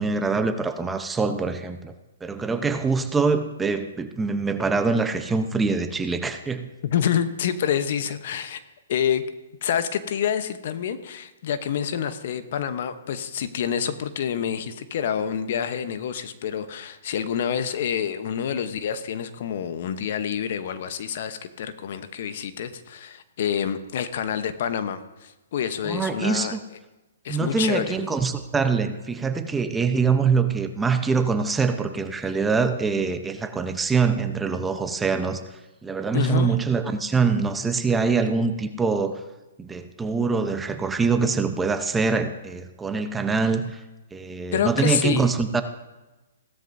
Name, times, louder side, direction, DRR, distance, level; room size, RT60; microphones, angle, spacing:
voice 1, 0.0-1.9 2.2-6.7 25.8-26.6 27.3-35.4 35.8-39.2 39.6-43.8 44.1-45.6, right 4 dB, 10° right, 8 dB, 0.8 m, -24 dB
voice 2, 6.8-8.6 8.9-9.2 9.6-26.6 27.2-28.0 36.1-36.5 44.5-45.3, left 8 dB, 55° left, 11 dB, 0.9 m, -27 dB
16.5 x 13.0 x 2.7 m, 1.1 s
hypercardioid pair, 135°, 0 cm